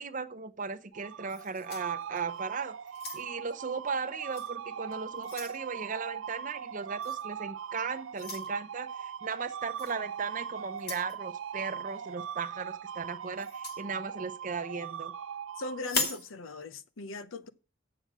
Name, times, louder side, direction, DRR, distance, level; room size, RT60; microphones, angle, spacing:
voice 1, 0.0-2.8 3.1-15.1, right 5 dB, 40° right, 0.7 m, -37 dB
sound 1, 0.9-16.2, right 8 dB, 75° right, 0.5 m, -40 dB
sound 2, 1.3-2.4 2.9-3.5 4.3-4.5 4.9-5.6 7.0-7.2 8.1-8.5 9.8-10.0 10.7-11.1 13.4-13.8 15.8-16.3, left 4 dB, 50° left, 2.0 m, -37 dB
voice 2, 15.6-17.5, left 2 dB, 85° left, 0.7 m, -39 dB
7.8 x 6.8 x 6.1 m
head